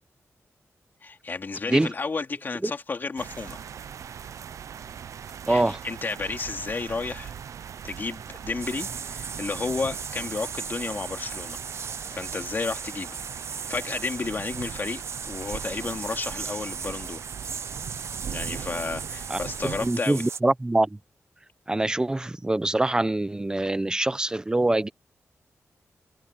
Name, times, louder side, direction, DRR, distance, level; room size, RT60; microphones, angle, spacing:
voice 1, 1.0-3.6 5.5-7.3 7.8-11.6 12.1-17.2 18.3-20.2, left 4 dB, 40° left, 2.8 m, -32 dB
sound 1, 3.2-19.9, right 8 dB, 85° right, 0.6 m, -40 dB
voice 2, 5.5-5.8 19.3-19.4 19.8-21.0 21.7-24.9, right 2 dB, 15° right, 1.0 m, -24 dB
sound 2, 8.6-20.4, right 6 dB, 60° right, 0.9 m, -37 dB
wide cardioid pair, 130°, 5 cm